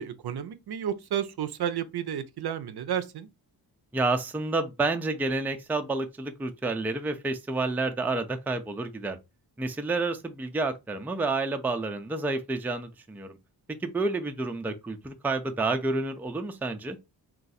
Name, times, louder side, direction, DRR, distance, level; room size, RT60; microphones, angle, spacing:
voice 1, 0.0-3.3, right 9 dB, 60° right, 0.5 m, -32 dB
voice 2, 3.9-9.2 9.6-13.4 13.8-17.0, right 3 dB, 5° right, 0.4 m, -29 dB
2.6 x 2.4 x 4.0 m
cardioid pair, 75°, 44 cm